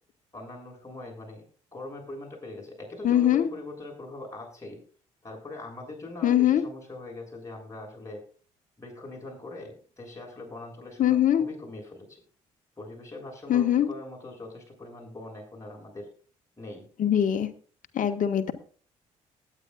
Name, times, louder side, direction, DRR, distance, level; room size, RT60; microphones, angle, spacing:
voice 1, 0.3-1.4 1.7-4.8 5.2-8.2 8.8-12.2 12.8-16.1 16.6-16.9, left 2 dB, 20° left, -1 dB, 7.5 m, -42 dB
voice 2, 3.0-3.5 6.2-6.6 11.0-11.5 13.5-13.9 17.0-17.5 17.9-18.5, left 10 dB, 55° left, 8 dB, 1.6 m, -22 dB
19.0 x 9.9 x 2.5 m, 0.41 s
hypercardioid pair, 55°, 16 cm